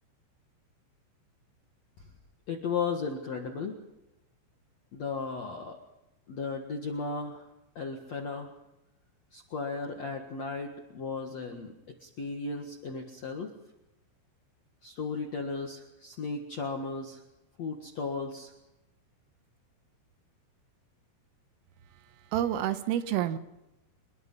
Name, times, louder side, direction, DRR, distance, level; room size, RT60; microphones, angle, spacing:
voice 1, 2.5-3.8 4.9-5.8 6.3-7.5 7.7-8.5 9.3-11.7 12.0-13.5 14.8-17.2 17.6-18.5, left 4 dB, 75° left, 1.5 m, -35 dB
voice 2, 21.9-23.4, right 11 dB, 85° right, 3.7 m, -29 dB
25.5 x 22.0 x 5.6 m
omnidirectional pair, 5.9 m